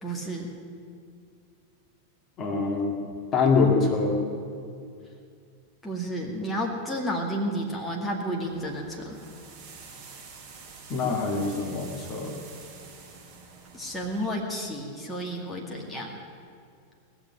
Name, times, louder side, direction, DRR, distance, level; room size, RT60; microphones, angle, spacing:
voice 1, 0.0-0.5 5.8-9.2 13.7-16.2, equal, 10° left, -2 dB, 2.1 m, -31 dB
voice 2, 2.4-2.9 3.3-4.2 10.9-12.3, left 4 dB, 30° left, 1 dB, 2.2 m, -24 dB
sound 1, 8.4-14.3, right 4 dB, 35° right, 4.9 m, -47 dB
19.5 x 7.3 x 10.0 m, 2.4 s
figure-of-eight pair, 90°, 0 cm